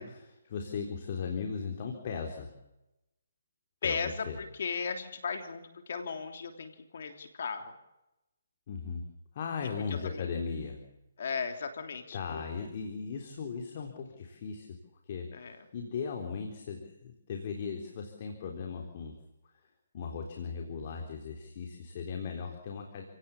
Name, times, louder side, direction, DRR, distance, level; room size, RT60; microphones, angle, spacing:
voice 1, 0.0-2.6 3.8-4.4 8.7-9.1 9.3-10.9 12.1-14.8 15.1-19.2 19.9-23.0, left 5 dB, 40° left, 3 dB, 3.8 m, -37 dB
voice 2, 3.8-7.7 9.9-10.3 11.2-12.4 15.3-15.6, left 5 dB, 60° left, 5 dB, 3.2 m, -36 dB
29.5 x 17.5 x 7.3 m, 0.95 s
hypercardioid pair, 155°, 0 cm